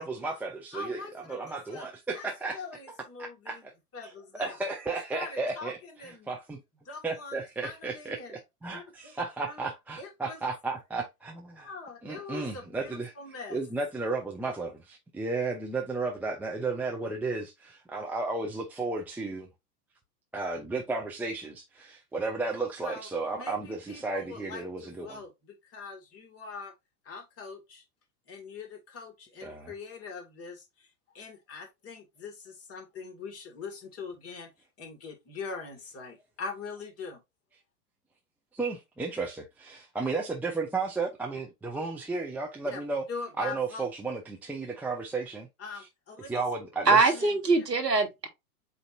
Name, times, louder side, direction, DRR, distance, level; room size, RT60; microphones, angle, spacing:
voice 1, 0.0-2.6 3.5-3.7 4.4-5.8 6.3-6.6 7.0-11.7 12.0-13.1 13.5-19.5 20.3-25.2 29.4-29.7 38.5-43.1 43.4-45.5 45.7-45.8 46.3-47.1, right 3 dB, 5° right, 0.5 m, -33 dB
voice 2, 0.7-1.9 2.1-2.3 2.5-3.6 3.9-4.6 5.1-6.3 6.9-8.4 8.7-9.1 9.4-9.7 10.0-10.4 11.6-13.6 22.8-23.1 23.3-26.7 27.0-27.8 28.3-34.5 34.8-37.2 42.6-42.8 43.1-43.9 45.6-46.4 46.9-47.7, left 4 dB, 30° left, 2.0 m, -42 dB
voice 3, 46.9-48.3, right 3 dB, 90° right, 1.5 m, -23 dB
7.8 x 2.7 x 2.5 m
figure-of-eight pair, 95°, 47 cm